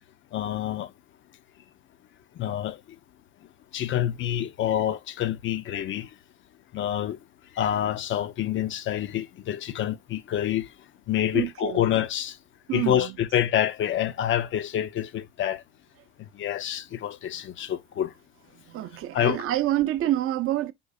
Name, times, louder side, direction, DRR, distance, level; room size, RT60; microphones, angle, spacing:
voice 1, 0.3-0.9 2.4-2.8 3.7-6.1 6.7-7.2 7.6-10.7 11.1-12.3 12.7-15.6 16.4-18.1 19.1-19.4, left 11 dB, 35° left, 0.5 m, -27 dB
voice 2, 11.3-11.8 12.7-13.1 18.7-20.7, right 14 dB, 40° right, 0.5 m, -27 dB
5.2 x 2.5 x 2.3 m
hypercardioid pair, 85°, 33 cm